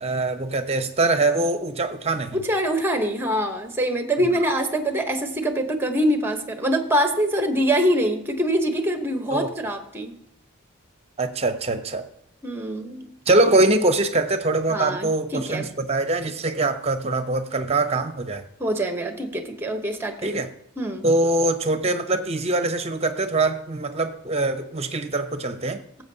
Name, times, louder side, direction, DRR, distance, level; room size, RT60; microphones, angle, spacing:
voice 1, 0.0-2.4 9.3-9.5 11.2-12.0 13.3-18.4 20.2-20.5 21.0-25.8, right 2 dB, 30° right, 9 dB, 0.8 m, -23 dB
voice 2, 2.3-10.1 12.4-13.1 14.7-15.7 18.6-20.3 20.8-21.1, equal, 10° right, 6 dB, 1.0 m, -24 dB
16.0 x 7.6 x 2.8 m, 0.74 s
head